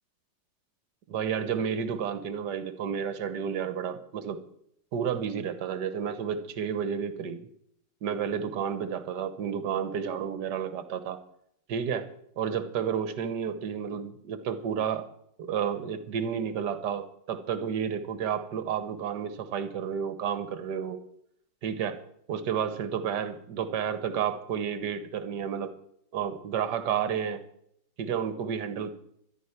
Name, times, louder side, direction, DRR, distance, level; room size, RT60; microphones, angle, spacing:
voice 1, 1.1-4.4 4.9-7.5 8.0-11.2 11.7-12.1 12.4-15.0 15.4-21.0 21.6-22.0 22.3-25.7 26.1-27.4 28.0-28.9, right 7 dB, 65° right, 11 dB, 1.7 m, -31 dB
13.0 x 11.0 x 5.9 m, 0.72 s
omnidirectional pair, 2.0 m